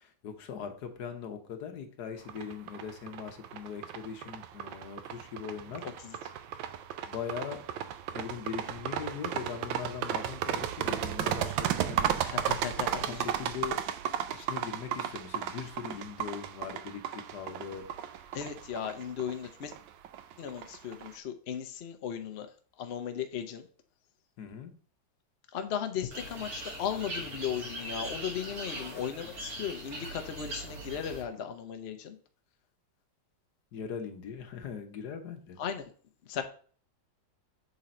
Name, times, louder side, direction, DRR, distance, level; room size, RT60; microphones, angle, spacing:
voice 1, 0.0-5.8 7.0-7.6 8.1-12.2 13.0-13.8 14.3-17.0 17.3-17.8 18.1-18.2 24.4-24.7 33.7-35.6, left 7 dB, 60° left, 6 dB, 1.4 m, -40 dB
sound 1, 2.3-21.1, right 10 dB, 80° right, 1.3 m, -34 dB
voice 2, 5.8-6.2 12.2-13.3 18.3-19.7 20.4-22.5 22.8-23.7 25.5-32.2 35.6-35.8 36.3-36.4, left 8 dB, 85° left, 7 dB, 0.5 m, -36 dB
sound 2, 26.1-31.2, right 1 dB, 50° right, 1.9 m, -40 dB
6.9 x 3.9 x 4.2 m, 0.43 s
omnidirectional pair, 2.1 m